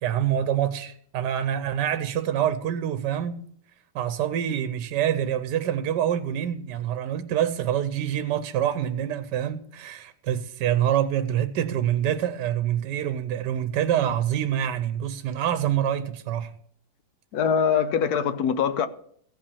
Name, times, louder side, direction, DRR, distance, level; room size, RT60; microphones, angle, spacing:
voice 1, 0.0-3.4 3.9-16.5, right 10 dB, 85° right, 1.3 m, -26 dB
voice 2, 17.3-18.9, left 7 dB, 70° left, 1.1 m, -23 dB
15.0 x 5.8 x 6.9 m
omnidirectional pair, 1.8 m